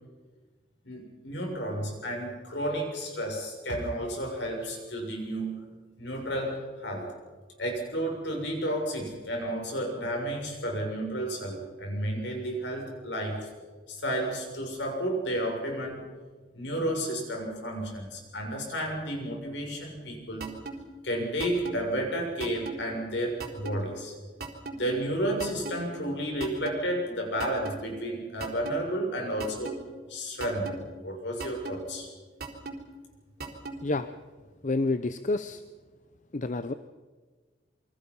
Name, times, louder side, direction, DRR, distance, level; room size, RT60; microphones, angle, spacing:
voice 1, 0.9-7.1 7.6-13.5 13.9-16.0 16.5-20.6 21.0-24.1 24.7-29.8 30.1-32.1, right 1 dB, 70° left, 1 dB, 7.0 m, -32 dB
sound 1, 20.4-20.7 21.4-21.8 22.4-22.7 23.4-23.8 24.4-24.8 25.4-25.8 26.4-26.7 27.4-27.8 28.4-28.7 29.4-29.8 30.4-30.8 31.4-31.8 32.4-32.7 33.4-33.8, right 4 dB, 55° right, 4.1 m, -36 dB
voice 2, 34.6-35.6 36.3-36.7, left 2 dB, 40° left, 10 dB, 0.7 m, -28 dB
27.5 x 24.0 x 5.6 m, 1.4 s
head